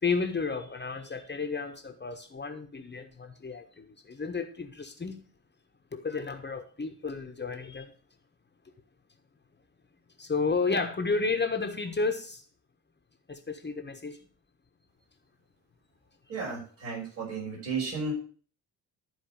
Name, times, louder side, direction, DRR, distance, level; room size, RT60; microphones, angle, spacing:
voice 1, 0.0-5.2 5.9-7.9 10.2-12.4 13.3-14.2, left 4 dB, 20° left, 1.3 m, -32 dB
voice 2, 16.3-18.1, right 4 dB, 70° right, 6.0 m, -34 dB
12.5 x 4.9 x 6.5 m
figure-of-eight pair, 45°, 49 cm